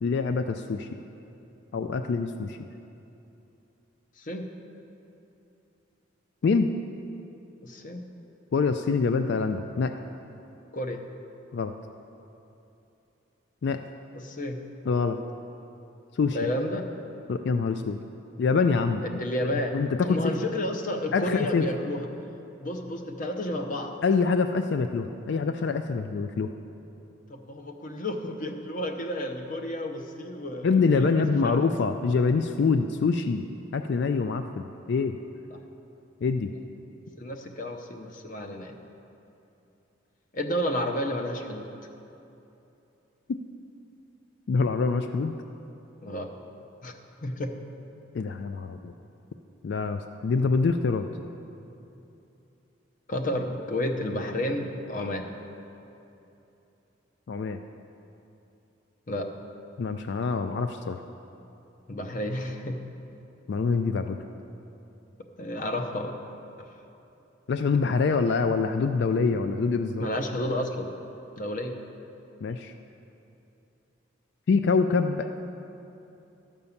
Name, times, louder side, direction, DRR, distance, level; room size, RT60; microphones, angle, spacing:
voice 1, 0.0-0.9 1.7-2.6 6.4-6.7 8.5-10.0 11.5-11.7 13.6-13.8 14.9-15.2 16.1-16.5 17.3-18.0 18.4-19.0 19.7-20.3 21.1-21.7 24.0-26.5 30.6-33.5 33.7-35.2 36.2-36.5 43.3-43.4 44.5-45.3 48.1-48.9 49.6-51.1 57.3-57.6 59.8-61.0 63.5-64.2 67.5-70.0 72.4-72.7 74.5-75.4, left 4 dB, 55° left, 8 dB, 0.3 m, -25 dB
voice 2, 4.2-4.5 7.6-8.0 10.7-11.0 14.1-14.6 16.3-16.9 19.0-19.7 20.1-22.1 22.6-24.0 27.3-31.7 37.2-38.7 40.3-41.7 46.0-46.3 46.8-46.9 47.2-47.5 53.1-55.3 59.1-59.3 61.9-62.8 65.4-66.2 70.0-70.9 71.4-71.8, left 1 dB, 40° left, 5 dB, 0.7 m, -31 dB
12.0 x 5.4 x 7.0 m, 2.9 s
head